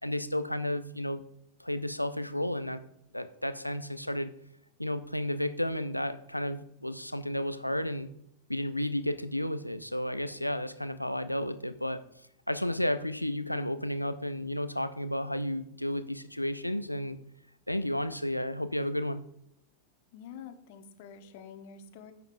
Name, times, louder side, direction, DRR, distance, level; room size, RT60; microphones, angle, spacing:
voice 1, 0.0-1.2 1.6-2.8 3.1-4.3 4.8-8.1 8.5-12.0 12.5-17.2 17.7-19.2, left 1 dB, 90° left, 12 dB, 0.5 m, -32 dB
voice 2, 20.1-22.1, left 7 dB, 50° left, 8 dB, 1.0 m, -47 dB
10.5 x 7.8 x 2.6 m, 0.73 s
figure-of-eight pair, 90°, 0 cm